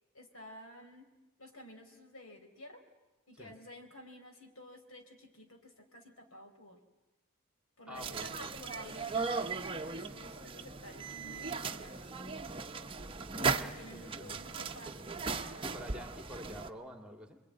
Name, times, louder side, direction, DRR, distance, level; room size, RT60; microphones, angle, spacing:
voice 1, 0.1-1.1 1.4-2.8 3.3-6.8 7.8-12.1 13.4-16.0, left 1 dB, 75° left, 5 dB, 4.2 m, -52 dB
voice 2, 7.9-8.4 13.9-14.4 15.6-17.4, equal, 5° right, 5 dB, 2.3 m, -48 dB
sound 1, 7.9-16.7, right 4 dB, 25° right, 0.9 m, -37 dB
28.0 x 22.0 x 9.6 m, 1.1 s
head